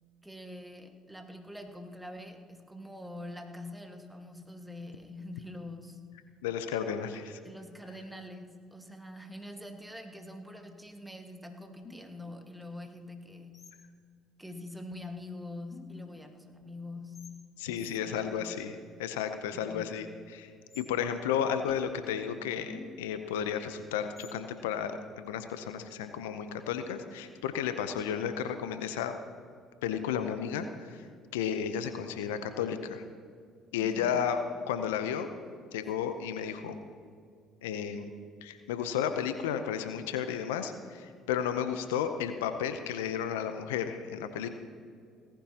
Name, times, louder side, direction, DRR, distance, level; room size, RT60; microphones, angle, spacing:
voice 1, 0.2-6.0 7.4-13.6 14.4-17.2 17.7-18.6 19.5-20.0 33.8-34.2, left 1 dB, 5° right, 4 dB, 1.7 m, -45 dB
voice 2, 6.4-7.4 17.6-18.7 19.0-20.1 20.3-20.5 20.8-29.1 29.8-31.0 31.3-33.0 33.7-35.3 35.7-36.8 37.6-38.1 38.4-44.5, left 8 dB, 85° left, 9 dB, 0.7 m, -33 dB
sound 1, 11.8-12.4 13.5-14.0 14.9-15.0 15.7-16.2 17.1-17.4 19.7-20.1 20.7-20.9 21.7-22.0 22.7-23.2 24.2-24.5, left 3 dB, 35° left, 1.8 m, -50 dB
18.0 x 14.5 x 2.9 m, 2.2 s
hypercardioid pair, 60°, 0 cm